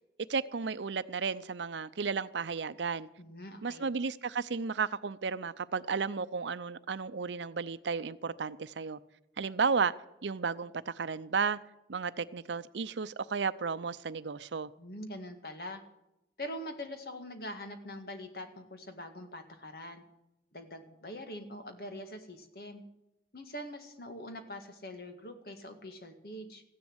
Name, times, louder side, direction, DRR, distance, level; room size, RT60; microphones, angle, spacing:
voice 1, 0.3-3.1 3.6-9.0 9.4-9.9 10.2-11.6 11.9-14.7, right 5 dB, 90° right, 0.6 m, -33 dB
voice 2, 3.2-3.9 14.8-15.8 16.4-20.0 20.5-22.8 23.3-26.6, left 1 dB, 55° left, 2.0 m, -43 dB
15.0 x 10.5 x 8.0 m
head